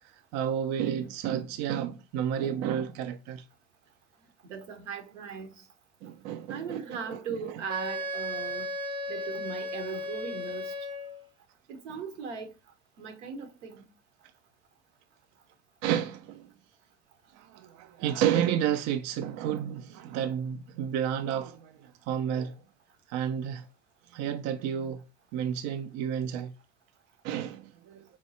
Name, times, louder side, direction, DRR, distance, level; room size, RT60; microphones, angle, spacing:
voice 1, 0.3-3.4 6.0-7.2 15.8-16.5 17.3-22.6 23.1-23.6 24.1-25.0 25.3-26.5 27.2-28.0, right 9 dB, 50° right, 0.4 m, -31 dB
voice 2, 4.5-5.6 6.5-8.7 9.1-10.7 11.7-12.5 13.0-13.9, right 5 dB, 80° right, 1.0 m, -38 dB
Wind instrument woodwind instrument, 7.7-11.3, left 1 dB, 15° right, 0.7 m, -35 dB
4.3 x 2.3 x 2.7 m
hypercardioid pair, 75°, 35 cm